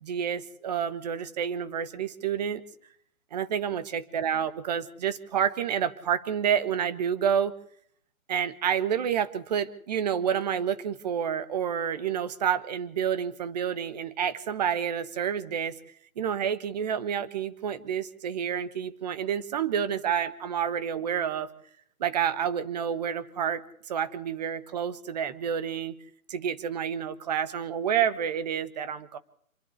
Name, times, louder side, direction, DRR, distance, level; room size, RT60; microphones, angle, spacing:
voice 1, 0.0-2.6 3.3-7.5 8.3-15.8 16.2-21.5 22.0-25.9 26.3-29.2, right 8 dB, 30° right, 13 dB, 1.3 m, -29 dB
27.5 x 10.5 x 9.6 m, 0.64 s
hypercardioid pair, 155°, 42 cm